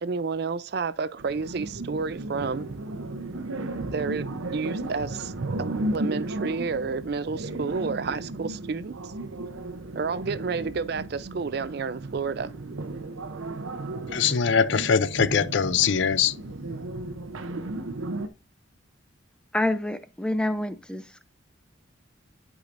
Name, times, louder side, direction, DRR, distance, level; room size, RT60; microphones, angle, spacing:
voice 1, 0.0-2.7 3.9-5.3 5.6-9.1 10.0-12.5, right 4 dB, 50° right, 0.4 m, -30 dB
sound 1, 1.2-18.3, right 2 dB, 85° right, 0.8 m, -34 dB
voice 2, 14.1-16.4, left 6 dB, 65° left, 0.5 m, -22 dB
voice 3, 19.5-21.2, left 1 dB, 5° left, 0.5 m, -27 dB
11.5 x 4.9 x 2.6 m
head